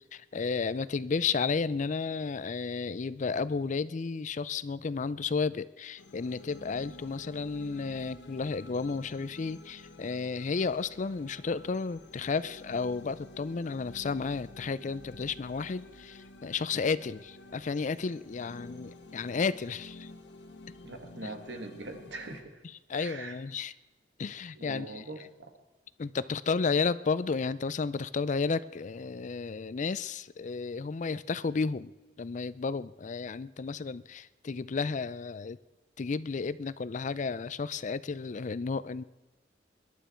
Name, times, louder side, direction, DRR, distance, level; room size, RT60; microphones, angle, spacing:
voice 1, 0.1-20.1 21.2-21.3 22.9-23.7 24.2-25.0 26.0-35.6 36.0-39.0, left 4 dB, 45° left, 17 dB, 0.4 m, -32 dB
sound 1, 6.0-22.4, left 1 dB, 85° left, 1.5 m, -50 dB
voice 2, 20.8-22.4 23.0-23.4 24.6-25.5, right 2 dB, 80° right, 5 dB, 2.0 m, -42 dB
22.0 x 11.5 x 4.4 m, 1.1 s
head